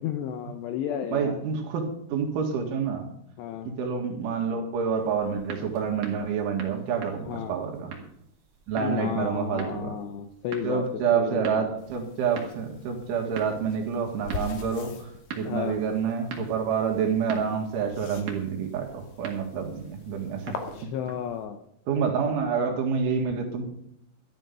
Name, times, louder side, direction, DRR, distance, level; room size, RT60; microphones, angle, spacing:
voice 1, 0.0-1.4 3.4-3.7 7.3-7.6 8.7-10.8 11.1-11.7 15.5-15.8 20.5-21.6, left 9 dB, 80° left, 7 dB, 2.5 m, -33 dB
voice 2, 1.1-3.1 3.7-7.9 8.7-9.9 10.6-20.6 21.9-23.7, right 6 dB, 75° right, 3 dB, 4.2 m, -28 dB
sound 1, 5.0-21.4, right 5 dB, 50° right, 2.9 m, -44 dB
sound 2, 11.8-20.8, left 5 dB, 60° left, 2.5 m, -43 dB
13.0 x 12.5 x 5.5 m, 0.72 s
omnidirectional pair, 5.8 m